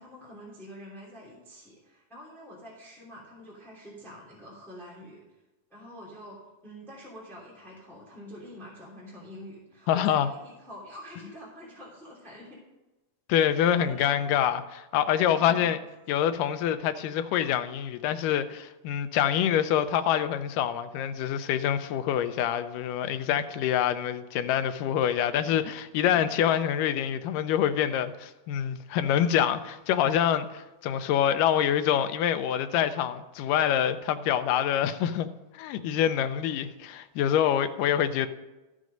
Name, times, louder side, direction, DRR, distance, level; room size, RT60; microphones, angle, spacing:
voice 1, 0.0-5.2 5.7-12.6 13.7-14.2, equal, ahead, 2.4 m, -46 dB
voice 2, 9.9-10.3 13.3-15.8 16.1-35.3 35.5-38.3, left 10 dB, 90° left, 2.2 m, -26 dB
13.5 x 6.2 x 5.3 m
omnidirectional pair, 3.7 m